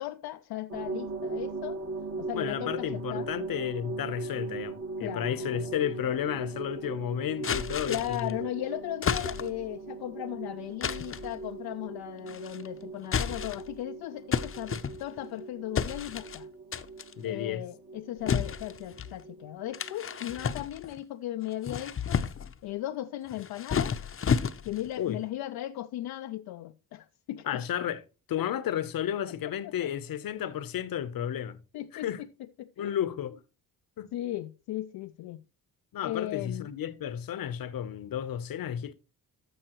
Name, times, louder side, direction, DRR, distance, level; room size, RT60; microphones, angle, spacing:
voice 1, 0.0-1.8 2.2-3.3 5.0-5.7 7.9-16.5 17.2-22.2 22.6-24.0 24.6-27.6 28.4-28.5 29.4-29.9 31.7-32.3 32.6-33.3 34.1-35.4 36.0-36.7, left 14 dB, 80° left, 0.5 m, -37 dB
sound 1, 0.7-20.5, right 4 dB, 40° right, 1.3 m, -40 dB
voice 2, 2.3-8.4 17.2-17.6 25.0-25.2 27.4-28.0 28.3-31.6 31.9-32.2 32.8-33.3 34.0-34.1 35.9-38.9, left 10 dB, 65° left, 0.9 m, -32 dB
sound 2, 7.4-8.3 9.0-9.7 10.8-11.3 12.3-12.7 13.0-13.8 14.3-15.3 15.7-16.4 16.7-17.1 18.3-19.1 19.7-21.0 21.5-22.6 23.3-24.9, left 7 dB, 35° left, 0.7 m, -31 dB
14.0 x 5.5 x 3.0 m
cardioid pair, 85°, 37 cm